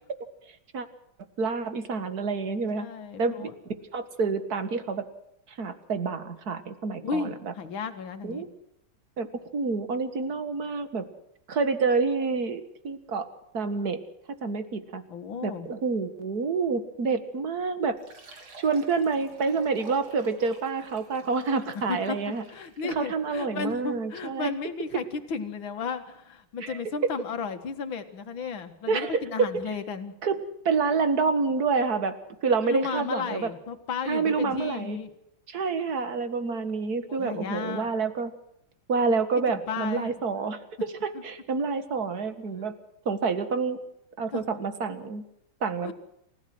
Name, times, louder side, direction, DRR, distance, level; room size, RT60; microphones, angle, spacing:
voice 1, 1.4-2.9 3.2-3.5 3.9-5.1 5.5-7.5 8.2-8.5 9.2-9.3 9.5-11.0 11.5-13.3 13.5-14.0 14.4-15.0 15.4-18.0 18.6-22.5 22.8-24.5 26.6-27.1 28.9-29.5 30.2-32.2 32.4-33.5 34.1-35.0 35.5-38.3 38.9-42.7 43.1-43.8 44.2-45.2 45.6-45.9, right 4 dB, 50° right, 10 dB, 2.1 m, -28 dB
voice 2, 2.8-3.5 7.0-8.5 15.1-15.7 21.7-22.2 22.5-30.1 32.6-35.1 37.1-37.9 39.5-40.1 41.1-41.2 44.3-44.4 45.8-45.9, left 5 dB, 70° left, 7 dB, 2.5 m, -34 dB
Fill (with liquid), 18.0-23.1, right 3 dB, 90° right, 4.2 m, -51 dB
28.5 x 15.5 x 6.2 m, 0.78 s
omnidirectional pair, 2.3 m